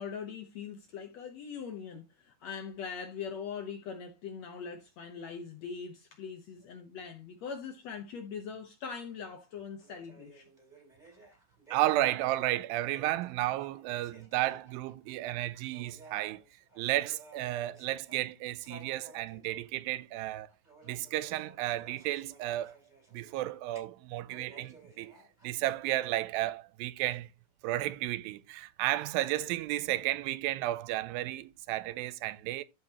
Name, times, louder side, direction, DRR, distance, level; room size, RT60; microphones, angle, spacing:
voice 1, 0.0-10.5, left 6 dB, 70° left, 1.7 m, -41 dB
sound 1, 9.8-15.1 15.5-23.8 24.2-25.9, right 2 dB, 15° right, 3.1 m, -56 dB
voice 2, 11.7-16.4 16.8-20.5 20.8-22.8 23.1-25.1 25.4-27.3 27.6-32.6, right 15 dB, 85° right, 2.4 m, -33 dB
14.0 x 5.1 x 2.9 m
omnidirectional pair, 4.1 m